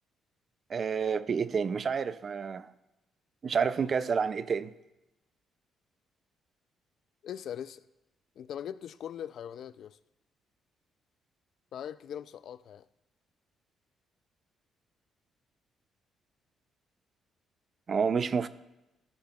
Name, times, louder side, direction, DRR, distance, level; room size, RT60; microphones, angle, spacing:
voice 1, 0.7-2.7 3.4-4.7 17.9-18.5, right 6 dB, 45° right, 0.4 m, -29 dB
voice 2, 7.2-7.8 8.4-10.0 11.7-12.8, left 9 dB, 70° left, 0.3 m, -40 dB
13.5 x 11.5 x 2.3 m
cardioid pair, 90°, 0 cm